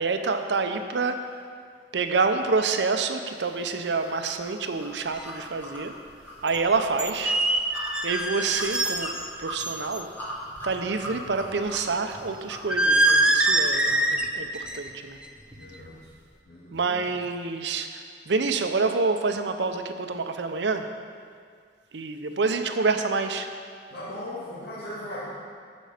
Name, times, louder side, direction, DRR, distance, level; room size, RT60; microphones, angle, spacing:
voice 1, 0.0-1.3 1.9-5.9 6.4-7.4 8.0-9.1 9.4-10.1 10.6-15.2 16.7-20.9 21.9-23.5, right 4 dB, 85° right, 7 dB, 0.7 m, -27 dB
sound 1, 4.0-14.1, equal, 10° left, 1.5 m, -40 dB
sound 2, 5.1-5.2 6.5-6.6 7.0-9.3 9.6-10.0 12.7-14.3 14.5-14.9 15.2-15.5, right 1 dB, 5° right, 0.4 m, -23 dB
voice 2, 15.5-16.1 16.4-17.0 23.9-25.3, left 1 dB, 70° left, -10 dB, 2.1 m, -38 dB
14.5 x 5.3 x 5.0 m, 2.1 s
head